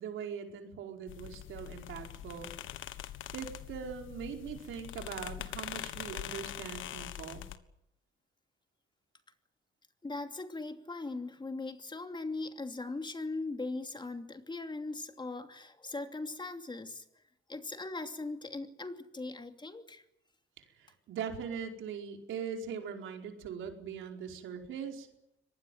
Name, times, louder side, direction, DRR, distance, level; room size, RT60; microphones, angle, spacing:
voice 1, 0.0-2.5 3.3-7.5 20.6-25.1, right 7 dB, 80° right, 3 dB, 4.8 m, -41 dB
sound 1, 1.1-7.6, left 12 dB, 85° left, 1.5 m, -43 dB
voice 2, 10.0-17.0 17.5-20.0, left 3 dB, 25° left, 7 dB, 2.8 m, -39 dB
24.0 x 19.5 x 9.3 m, 0.80 s
cardioid pair, 90°, 20 cm